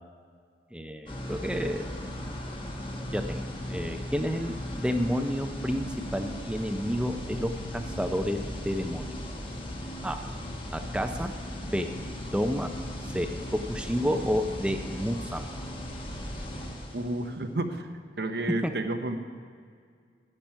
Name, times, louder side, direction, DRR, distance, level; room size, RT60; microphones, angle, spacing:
voice 1, 0.7-1.9 3.1-8.4 8.6-9.1 10.0-10.2 10.7-11.3 11.6-11.9 12.3-12.7 13.1-15.5 18.6-18.7, equal, 5° right, 6 dB, 0.5 m, -30 dB
sound 1, 1.1-17.4, left 1 dB, 30° left, 1.2 m, -37 dB
voice 2, 16.9-17.9 18.2-19.2, right 2 dB, 70° right, 7 dB, 0.8 m, -31 dB
10.5 x 8.9 x 5.6 m, 2.1 s
head